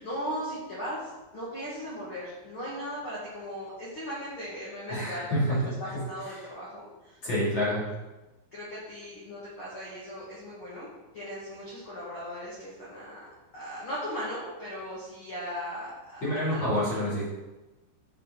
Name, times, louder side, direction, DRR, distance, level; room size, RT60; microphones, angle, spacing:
voice 1, 0.0-5.4 5.6-7.2 8.5-10.9 11.1-13.3 13.5-16.7 16.9-17.2, equal, 50° left, -7 dB, 1.6 m, -38 dB
voice 2, 4.9-6.5 7.2-7.8 16.2-17.3, equal, 30° left, -9 dB, 3.0 m, -28 dB
7.7 x 7.3 x 4.1 m, 1.1 s
omnidirectional pair, 5.2 m